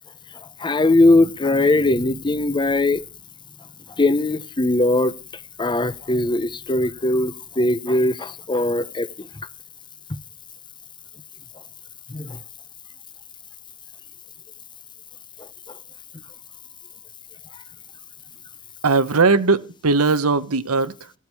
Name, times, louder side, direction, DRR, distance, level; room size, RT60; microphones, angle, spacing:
voice 1, 0.6-3.0 4.0-5.1 5.6-9.1 12.1-12.4, left 2 dB, 20° left, 0.7 m, -20 dB
voice 2, 18.8-21.1, right 4 dB, 85° right, 1.1 m, -19 dB
16.5 x 13.0 x 4.7 m
head